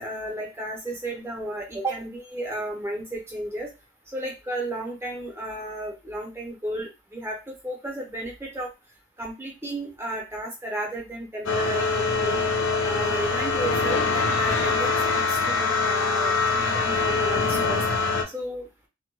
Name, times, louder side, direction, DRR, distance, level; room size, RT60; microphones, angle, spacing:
voice 1, 0.0-3.7 4.1-8.7 9.2-12.4 12.8-17.8 18.3-18.7, right 1 dB, 10° right, -1 dB, 0.6 m, -33 dB
sound 1, 11.5-18.2, left 4 dB, 55° left, 0.5 m, -24 dB
2.1 x 2.1 x 2.9 m, 0.26 s
head